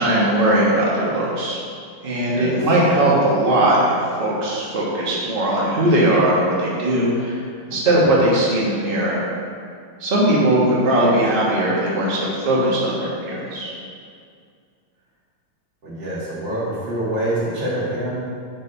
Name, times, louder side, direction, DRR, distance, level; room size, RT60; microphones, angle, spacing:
voice 1, 0.0-1.6 2.0-7.4 7.7-9.2 10.0-13.7, right 1 dB, 30° right, -6 dB, 1.3 m, -19 dB
voice 2, 15.8-18.1, right 1 dB, 60° right, -8 dB, 2.6 m, -25 dB
6.5 x 5.5 x 4.0 m, 2.2 s
omnidirectional pair, 2.4 m